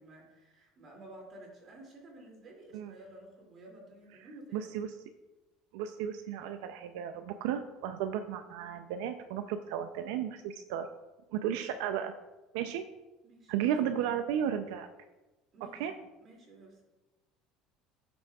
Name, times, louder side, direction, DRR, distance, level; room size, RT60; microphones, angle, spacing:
voice 1, 0.0-4.7 13.2-13.7 15.5-16.8, right 1 dB, 30° right, -2 dB, 2.5 m, -52 dB
voice 2, 4.5-4.9 5.7-10.9 11.3-12.1 12.5-12.8 13.5-14.9 15.7-15.9, right 9 dB, 80° right, 7 dB, 0.4 m, -34 dB
15.5 x 6.1 x 2.3 m, 1.1 s
cardioid pair, 170°, 0 cm